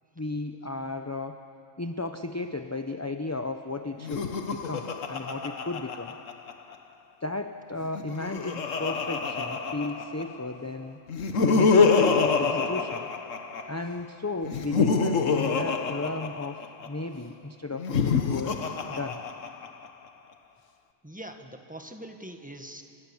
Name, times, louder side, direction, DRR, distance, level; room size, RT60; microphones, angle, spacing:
voice 1, 0.2-1.4 1.8-6.1 7.2-11.0 11.4-13.1 13.7-19.2, left 2 dB, 15° left, 7 dB, 0.6 m, -34 dB
Laughter, 4.0-6.7 7.8-10.4 11.1-13.8 14.4-16.9 17.7-19.9, left 5 dB, 80° left, 1.5 m, -26 dB
voice 2, 21.0-22.8, right 1 dB, 5° right, 5 dB, 1.5 m, -42 dB
29.0 x 25.0 x 7.2 m, 2.7 s
omnidirectional pair, 1.3 m